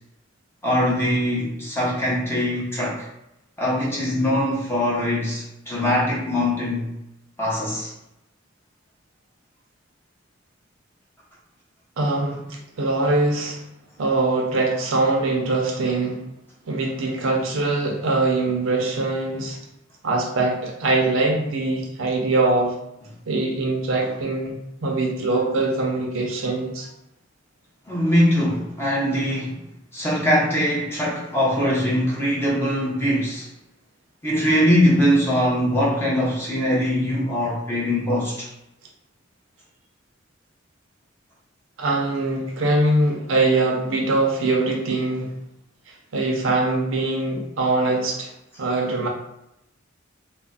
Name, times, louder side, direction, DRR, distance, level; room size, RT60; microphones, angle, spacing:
voice 1, 0.6-3.1 3.6-6.9 7.4-7.9 27.9-29.6 29.9-33.5 34.2-38.5, equal, 10° left, -6 dB, 0.6 m, -22 dB
voice 2, 12.0-13.6 14.0-16.2 16.7-19.6 20.0-22.7 23.3-26.9 41.8-45.3 45.9-48.3 48.6-49.1, right 2 dB, 85° right, 0 dB, 0.6 m, -22 dB
2.4 x 2.1 x 3.7 m, 0.85 s
head